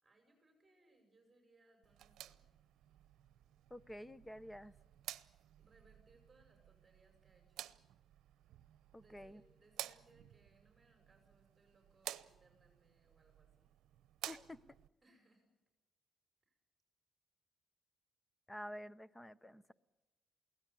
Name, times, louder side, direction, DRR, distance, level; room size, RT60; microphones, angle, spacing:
voice 1, 0.0-2.7 5.6-7.8 9.0-13.7 15.0-15.5 16.4-16.6, right 2 dB, 20° right, 3 dB, 5.9 m, -70 dB
sound 1, 1.8-14.9, right 13 dB, 80° right, 0.8 m, -53 dB
voice 2, 3.7-4.7 8.9-9.4 14.3-14.6 18.5-19.7, equal, 15° left, 18 dB, 0.8 m, -50 dB
23.0 x 17.5 x 9.7 m, 1.1 s
cardioid pair, 90°, 0 cm